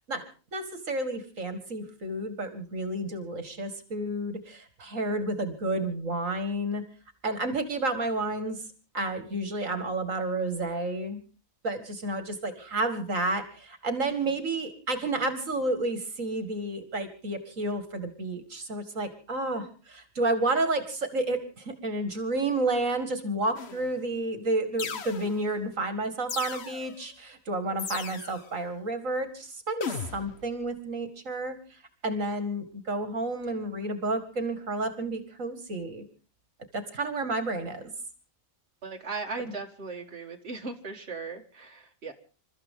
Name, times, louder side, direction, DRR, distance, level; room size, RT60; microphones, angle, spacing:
voice 1, 0.5-6.8 7.2-8.6 8.9-11.2 11.6-31.6 32.0-36.0 36.7-37.9, right 2 dB, 65° right, 9 dB, 2.4 m, -31 dB
sound 1, 23.6-24.0 24.8-25.6 26.3-27.0 27.8-28.5 29.8-30.5, left 6 dB, 50° left, 1.3 m, -37 dB
voice 2, 38.8-42.1, right 4 dB, 50° right, 2 dB, 2.2 m, -38 dB
28.0 x 13.5 x 3.7 m, 0.37 s
omnidirectional pair, 1.5 m